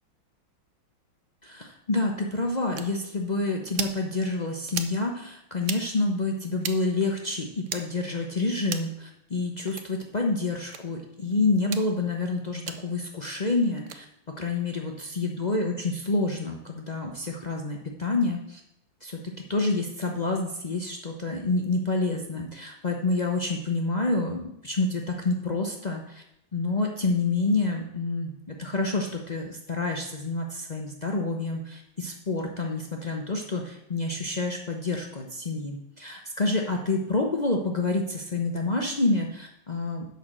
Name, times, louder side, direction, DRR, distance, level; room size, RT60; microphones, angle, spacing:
voice 1, 1.4-14.0 14.4-18.6 19.0-26.2 26.5-28.3 28.6-40.1, left 2 dB, 80° left, 1 dB, 0.3 m, -28 dB
sound 1, 2.8-2.9 3.7-4.0 4.7-5.0 5.6-5.8 6.6-6.8 7.7-7.8 8.6-8.9 9.7-9.9 10.7-10.8 11.6-11.8 12.7-12.8 13.8-14.0, right 7 dB, 70° right, 0.7 m, -34 dB
11.0 x 4.4 x 7.4 m, 0.78 s
omnidirectional pair, 2.2 m